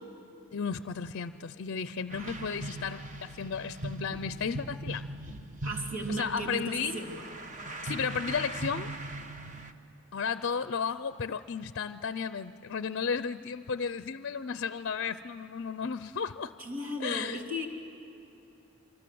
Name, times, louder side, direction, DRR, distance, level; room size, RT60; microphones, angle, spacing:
voice 1, 0.5-5.1 6.1-7.0 7.8-8.9 10.1-16.5 17.0-17.4, left 6 dB, 50° left, 13 dB, 0.5 m, -34 dB
sound 1, 2.1-9.7, right 1 dB, 35° right, 1.1 m, -40 dB
voice 2, 2.1-2.5 5.6-7.2 16.6-17.7, equal, 65° right, 1 dB, 3.2 m, -36 dB
27.0 x 25.0 x 7.8 m, 2.9 s
head